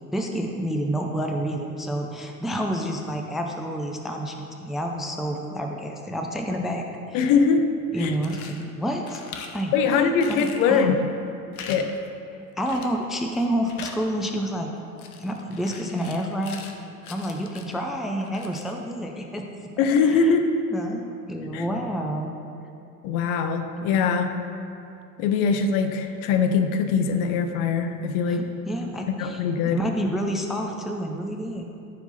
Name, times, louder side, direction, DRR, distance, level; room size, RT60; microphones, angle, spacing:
voice 1, 0.0-6.8 7.1-7.2 7.9-9.2 9.5-10.0 10.3-10.9 12.6-14.7 15.2-16.6 17.1-19.5 20.0-20.4 20.7-22.3 28.3-31.7, equal, ahead, 2 dB, 0.5 m, -29 dB
voice 2, 7.1-7.7 8.0-8.1 9.7-11.0 11.6-12.0 19.8-20.6 21.5-21.6 23.0-24.3 25.2-28.4 29.2-29.8, left 5 dB, 45° left, 8 dB, 0.7 m, -22 dB
sound 1, 7.9-8.6 9.0-9.6 10.2-10.8 11.5-11.8 12.1-12.2 12.7-13.0 13.3-14.0 15.0-16.8 17.0-17.8 18.2-18.8, left 6 dB, 70° left, 0.9 m, -41 dB
14.0 x 4.7 x 4.0 m, 2.6 s
figure-of-eight pair, 70°, 46 cm